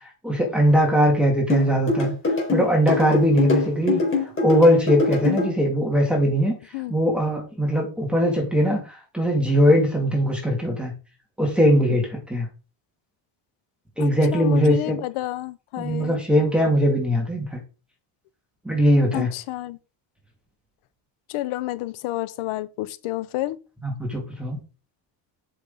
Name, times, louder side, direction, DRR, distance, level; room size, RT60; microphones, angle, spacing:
voice 1, 0.2-2.1 2.5-4.0 4.4-6.6 6.9-10.9 11.4-12.5 14.0-15.0 15.8-17.6 18.6-19.3 23.8-24.6, equal, ahead, 2.7 m, -20 dB
sound 1, 1.5-5.5, left 4 dB, 25° left, 4.4 m, -23 dB
voice 2, 14.0-16.2 19.1-19.8 21.3-23.6, left 17 dB, 90° left, 0.9 m, -30 dB
8.1 x 6.5 x 4.0 m
cardioid pair, 130°, 48 cm